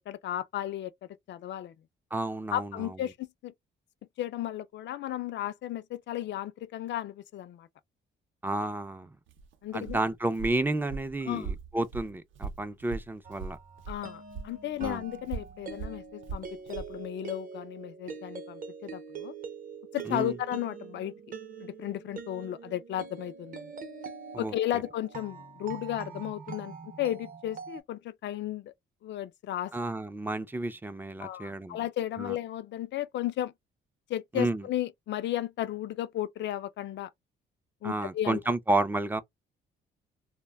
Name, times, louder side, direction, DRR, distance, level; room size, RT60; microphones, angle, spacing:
voice 1, 0.0-1.7 2.5-3.5 4.2-7.7 9.6-10.0 11.3-11.5 13.9-19.3 19.9-21.1 21.6-23.7 24.4-28.7 29.0-29.7 31.2-33.5 34.1-37.1 37.8-38.4, left 12 dB, 65° left, 0.4 m, -34 dB
voice 2, 2.1-2.9 8.4-9.1 9.7-13.6 14.8-15.0 20.1-20.4 24.3-24.5 29.7-31.8 32.2-32.4 34.3-34.6 37.8-39.2, right 2 dB, 10° right, 0.4 m, -31 dB
Walk footsteps, 9.3-14.0 14.3-16.9, right 5 dB, 75° right, 0.7 m, -40 dB
sound 1, 13.2-27.8, right 5 dB, 45° right, 0.7 m, -44 dB
2.1 x 2.1 x 3.3 m
cardioid pair, 90°, 20 cm